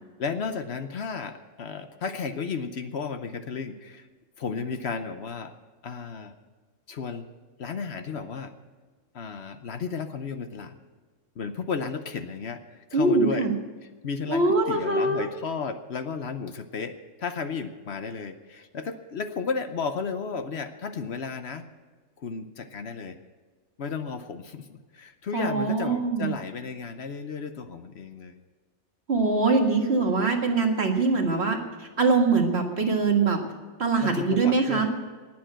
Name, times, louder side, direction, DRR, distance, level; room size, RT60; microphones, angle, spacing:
voice 1, 0.2-4.1 4.4-5.5 5.8-6.3 6.9-7.3 7.6-8.5 9.1-10.8 11.4-13.5 14.0-21.6 22.2-23.2 23.8-28.4 34.0-34.9, left 5 dB, 60° left, 9 dB, 1.1 m, -33 dB
voice 2, 12.9-13.5 14.3-15.3 25.3-26.3 29.1-33.4 33.8-34.9, right 3 dB, 55° right, 2 dB, 2.0 m, -23 dB
19.0 x 7.6 x 7.6 m, 1.4 s
omnidirectional pair, 1.3 m